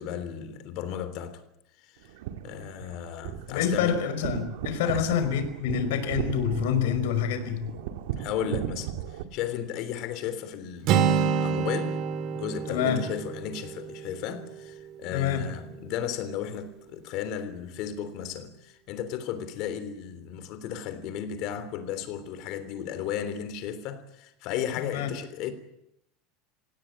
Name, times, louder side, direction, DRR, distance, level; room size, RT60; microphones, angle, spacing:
voice 1, 0.0-1.4 1.8-2.1 2.4-4.0 4.8-5.1 8.2-11.1 11.4-25.5, left 9 dB, 45° left, 3.4 m, -35 dB
sound 1, 2.0-9.2, right 10 dB, 80° right, 2.2 m, -36 dB
voice 2, 3.5-7.7 12.7-13.0 15.1-15.4 24.8-25.1, left 8 dB, 85° left, 5.3 m, -27 dB
Acoustic guitar, 10.8-14.8, right 7 dB, 40° right, 1.9 m, -27 dB
26.5 x 17.0 x 8.7 m
supercardioid pair, 165°, 0 cm